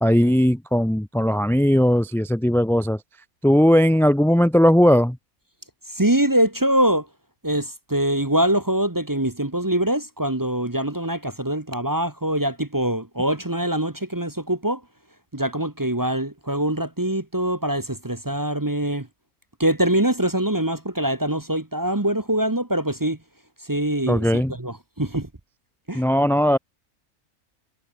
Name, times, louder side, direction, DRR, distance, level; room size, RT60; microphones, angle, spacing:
voice 1, 0.0-3.0 3.4-5.2 24.1-24.5 25.9-26.6, equal, ahead, 0.7 m, -18 dB
voice 2, 5.9-7.1 7.4-14.8 15.3-19.1 19.6-23.2 23.7-25.3 25.9-26.0, right 1 dB, 15° right, 1.0 m, -23 dB
omnidirectional pair, 1.6 m